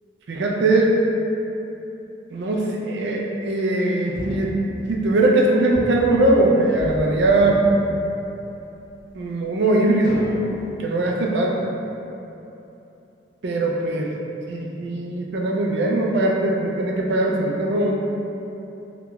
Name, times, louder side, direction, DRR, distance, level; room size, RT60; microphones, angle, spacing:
voice 1, 0.3-0.9 2.3-4.5 4.9-7.6 9.1-10.2 10.8-11.7 13.4-14.1 14.5-17.9, right 2 dB, 70° right, -1 dB, 0.4 m, -20 dB
sound 1, 4.1-5.4 5.7-7.0 7.3-8.6 9.2-9.3 10.0-10.9, equal, 60° left, 0.7 m, -35 dB
2.9 x 2.3 x 2.9 m, 2.9 s
head